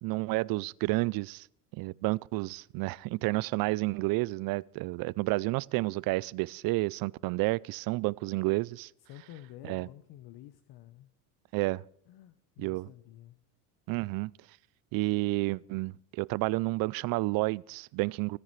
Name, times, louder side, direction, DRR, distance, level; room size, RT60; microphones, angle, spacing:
voice 1, 0.0-1.5 1.7-8.9 9.6-9.9 11.5-11.8 12.6-12.9 13.9-14.3 14.9-18.4, right 22 dB, 55° right, 0.5 m, -30 dB
voice 2, 9.1-11.1 12.1-13.4, left 14 dB, 55° left, 0.9 m, -50 dB
28.5 x 9.8 x 3.2 m
supercardioid pair, 105°, 44 cm